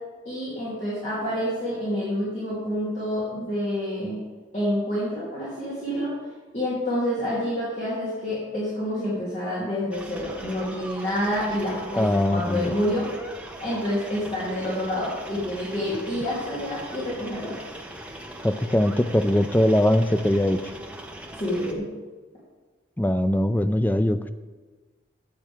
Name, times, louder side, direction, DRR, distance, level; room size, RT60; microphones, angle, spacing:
voice 1, 0.2-4.2 4.5-6.1 6.5-13.1 13.6-17.6 21.3-21.9, equal, 35° left, -9 dB, 3.0 m, -28 dB
sound 1, 9.9-21.7, right 1 dB, 5° right, 0.9 m, -41 dB
voice 2, 12.0-12.7 18.4-20.6 23.0-24.3, left 1 dB, 10° left, 10 dB, 0.4 m, -21 dB
13.5 x 8.7 x 3.6 m, 1.3 s
head